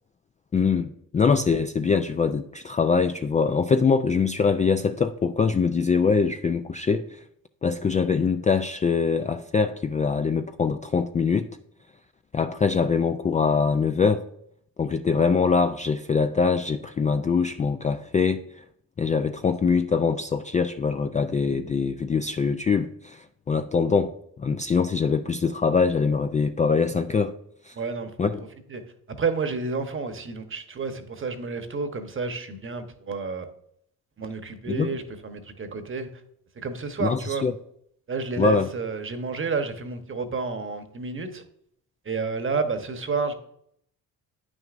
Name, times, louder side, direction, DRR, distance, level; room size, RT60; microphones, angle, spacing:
voice 1, 0.5-7.2 7.6-11.5 12.3-14.2 14.8-18.6 19.0-27.3 27.6-27.8 28.2-28.4 34.7-35.0 37.0-37.5 38.4-38.7, left 5 dB, 20° left, 8 dB, 0.3 m, -23 dB
voice 2, 27.7-28.8 29.2-33.5 34.2-36.1 36.6-37.5 38.1-41.4 42.0-43.3, right 4 dB, 35° right, 8 dB, 1.1 m, -30 dB
9.0 x 6.2 x 2.5 m, 0.71 s
supercardioid pair, 75°, 38 cm